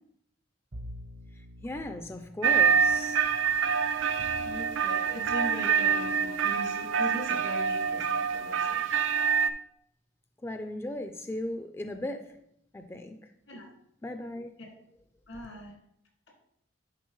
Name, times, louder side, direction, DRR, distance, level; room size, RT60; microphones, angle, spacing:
Bowed string instrument, 0.7-5.8, equal, 60° right, 0.8 m, -49 dB
voice 1, 1.6-3.2 10.4-12.4 12.7-13.2 14.0-14.6, left 1 dB, 15° left, 0.3 m, -37 dB
sound 1, 2.4-9.5, right 6 dB, 85° right, 0.4 m, -26 dB
voice 2, 4.3-9.0 13.5-13.7 15.3-15.7, equal, 80° left, 2.0 m, -40 dB
10.5 x 4.1 x 3.1 m
head